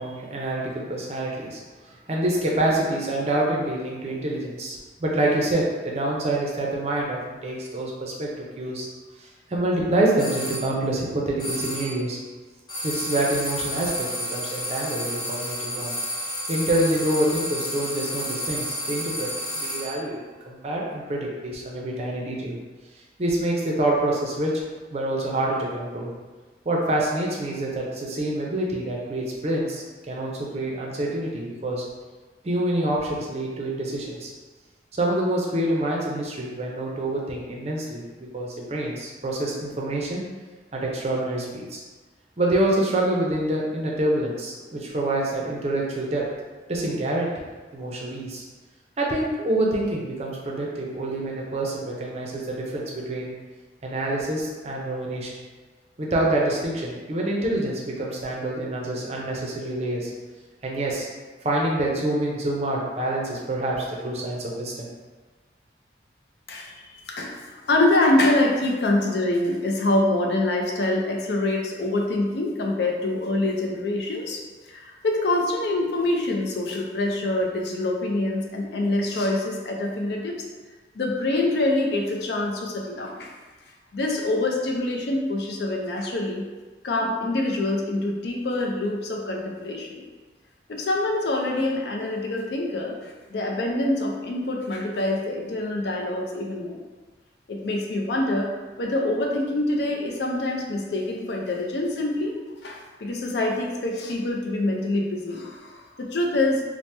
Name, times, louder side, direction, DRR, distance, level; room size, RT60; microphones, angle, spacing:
voice 1, 0.0-8.9 9.2-12.2 12.8-15.9 16.5-19.3 19.6-20.2 20.5-22.6 23.2-24.5 24.9-26.1 26.6-31.8 32.4-34.3 34.9-40.2 40.7-41.8 42.4-46.2 46.7-47.3 47.7-48.4 49.0-53.3 53.8-55.3 56.0-60.1 60.6-61.1 61.4-64.9, right 1 dB, 35° right, -2 dB, 0.5 m, -26 dB
sound 1, 10.2-10.7 11.4-12.0 12.7-20.1, equal, 20° left, 0.7 m, -31 dB
voice 2, 66.5-74.4 74.7-80.3 80.9-83.3 83.9-86.4 86.8-90.0 90.7-96.8 97.5-98.5 98.8-102.4 102.6-106.6, left 2 dB, 65° left, 0 dB, 0.4 m, -25 dB
2.8 x 2.1 x 3.2 m, 1.3 s
head